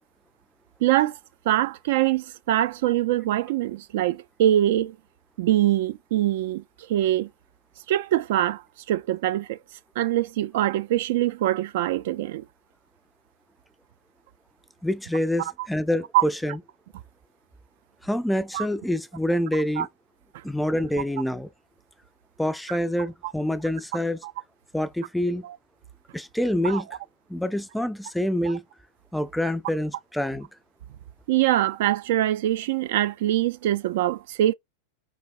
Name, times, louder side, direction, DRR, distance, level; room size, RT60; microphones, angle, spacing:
voice 1, 0.8-1.2 1.5-4.9 5.4-6.6 6.9-7.3 7.9-8.6 8.9-9.6 10.0-12.4 16.1-16.2 18.5-18.6 19.8-19.9 23.2-23.3 26.6-26.8 31.3-34.5, right 13 dB, 55° right, 0.5 m, -23 dB
voice 2, 14.8-16.6 18.0-19.9 20.4-21.5 22.4-24.2 24.7-25.4 26.1-26.9 27.3-28.6 29.1-30.5, left 1 dB, 5° left, 0.4 m, -26 dB
5.2 x 4.0 x 2.4 m
figure-of-eight pair, 90°, 0 cm